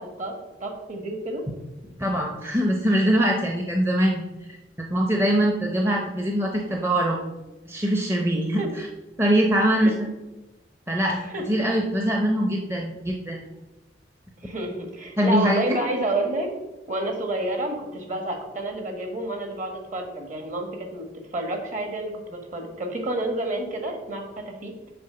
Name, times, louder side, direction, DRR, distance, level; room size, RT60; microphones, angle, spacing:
voice 1, 0.0-1.4 8.6-8.7 9.8-9.9 11.3-11.4 14.4-16.5 16.9-21.0 21.3-24.7, right 2 dB, 45° right, 4 dB, 1.4 m, -29 dB
voice 2, 2.0-4.2 4.9-7.3 7.7-8.9 9.2-10.1 10.9-11.2 11.5-13.4 15.2-15.8, equal, 15° right, 1 dB, 0.7 m, -23 dB
6.8 x 4.6 x 6.8 m, 1.1 s
head